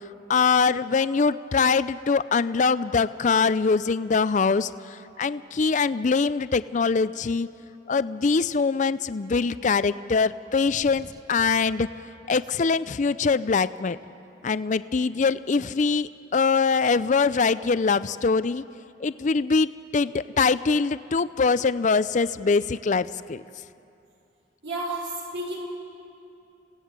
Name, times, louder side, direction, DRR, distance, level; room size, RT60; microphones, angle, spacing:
voice 1, 0.3-7.5 7.9-11.9 12.3-14.0 14.4-18.6 19.0-23.4, left 4 dB, 40° left, 15 dB, 0.4 m, -23 dB
sound 1, 10.5-11.4, right 1 dB, 20° right, 1.0 m, -47 dB
voice 2, 24.6-25.7, right 1 dB, 85° right, -1 dB, 4.3 m, -31 dB
27.0 x 17.0 x 8.1 m, 2.7 s
head